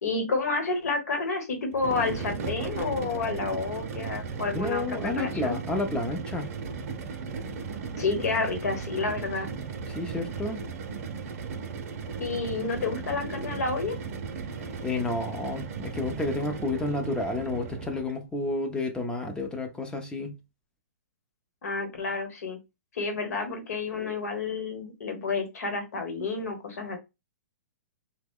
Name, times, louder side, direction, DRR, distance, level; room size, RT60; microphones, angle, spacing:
voice 1, 0.0-5.6 8.0-9.5 12.2-14.0 21.6-22.6 22.9-27.0, left 4 dB, 75° left, 1.1 m, -30 dB
sound 1, 1.7-18.2, right 5 dB, 60° right, 0.7 m, -36 dB
voice 2, 4.5-6.5 9.9-10.6 14.8-20.4, left 2 dB, 10° left, 0.6 m, -30 dB
2.9 x 2.2 x 3.5 m
hypercardioid pair, 130°, 9 cm